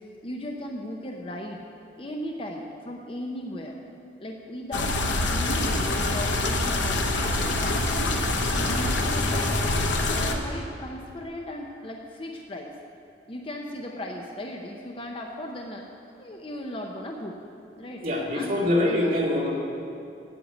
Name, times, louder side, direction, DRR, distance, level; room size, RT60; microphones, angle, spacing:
voice 1, 0.2-1.7 2.0-3.8 4.2-7.8 8.4-9.6 10.0-12.7 13.3-15.9 16.2-17.4 17.8-18.0 18.3-19.2, left 1 dB, 30° left, 1 dB, 0.7 m, -37 dB
sound 1, 4.7-10.3, left 2 dB, 80° left, 1.1 m, -25 dB
voice 2, 18.0-19.6, left 1 dB, 50° right, -4 dB, 2.2 m, -24 dB
8.6 x 8.0 x 9.0 m, 2.5 s
head